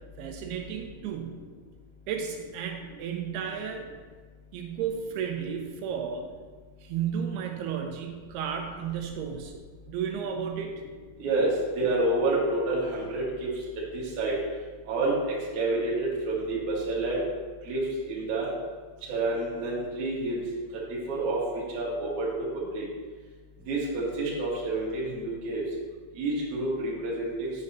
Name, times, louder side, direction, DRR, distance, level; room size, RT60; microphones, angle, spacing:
voice 1, 0.2-1.4 2.1-3.9 4.5-6.3 6.8-9.6 9.9-10.8, right 7 dB, 85° right, 3 dB, 2.7 m, -33 dB
voice 2, 11.2-13.5 13.9-14.3 14.9-15.1 15.6-17.2 17.7-17.8 18.1-18.5 19.1-20.4 21.1-21.4 21.7-22.3 22.7-22.8 23.7-25.6 26.2-27.5, right 2 dB, 60° right, -5 dB, 2.6 m, -28 dB
9.2 x 5.3 x 2.7 m, 1.4 s
omnidirectional pair, 4.5 m